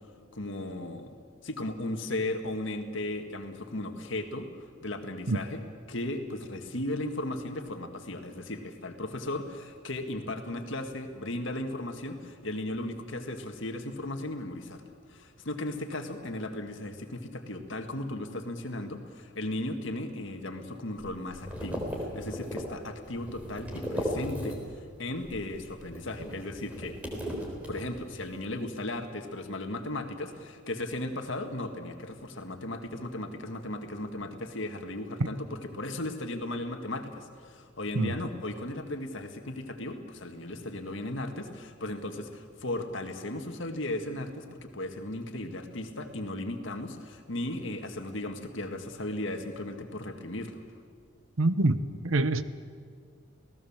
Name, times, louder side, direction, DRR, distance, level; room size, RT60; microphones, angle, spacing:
voice 1, 0.3-1.1 1.4-4.5 4.8-14.8 15.1-24.6 25.0-27.0 27.7-50.6, left 1 dB, 65° left, 2.0 m, -36 dB
sound 1, 21.0-24.9 25.2-28.3, equal, 5° right, 3.8 m, -37 dB
voice 2, 51.4-51.8 52.0-52.4, right 2 dB, 75° right, 1.0 m, -25 dB
28.0 x 18.0 x 7.4 m
head